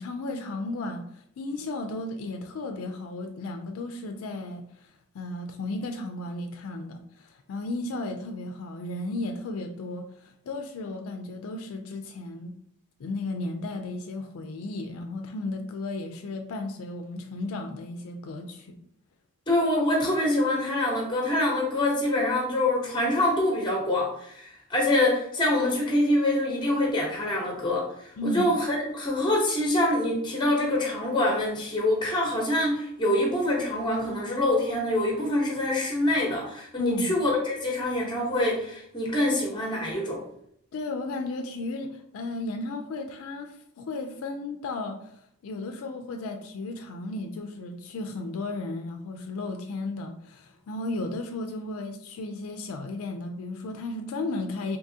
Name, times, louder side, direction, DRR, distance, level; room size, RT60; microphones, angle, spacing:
voice 1, 0.0-4.9 5.1-12.5 13.0-18.8 28.2-28.5 36.8-37.1 40.7-45.1 45.4-54.8, left 2 dB, 70° left, 5 dB, 0.3 m, -34 dB
voice 2, 19.5-40.2, left 1 dB, 20° left, -1 dB, 0.8 m, -25 dB
3.5 x 2.8 x 2.7 m, 0.72 s
head